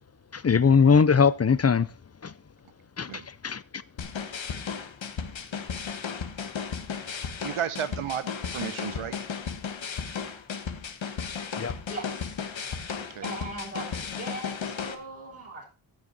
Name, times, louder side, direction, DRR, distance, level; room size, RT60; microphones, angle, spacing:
voice 1, 0.3-1.9 2.2-2.3 3.0-3.6 11.6-11.7, left 5 dB, 30° left, 0.5 m, -21 dB
sound 1, 4.0-14.9, left 6 dB, 70° left, 1.4 m, -35 dB
voice 2, 7.4-9.1 13.1-13.3, right 9 dB, 90° right, 1.1 m, -33 dB
voice 3, 11.9-12.4 13.2-15.6, right 1 dB, 30° right, 7.6 m, -39 dB
16.0 x 6.3 x 4.0 m
wide cardioid pair, 120°, 48 cm